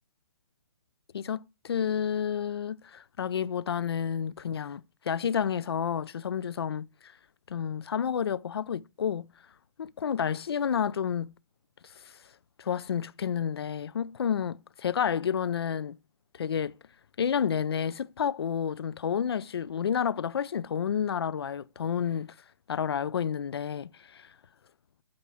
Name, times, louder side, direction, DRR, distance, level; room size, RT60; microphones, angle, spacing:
voice 1, 1.1-7.1 7.5-9.3 9.8-11.3 12.6-16.0 16.3-16.7 17.2-22.3 22.7-24.3, left 8 dB, 70° left, 0.5 m, -30 dB
11.5 x 4.4 x 6.1 m
hypercardioid pair, 155°, 13 cm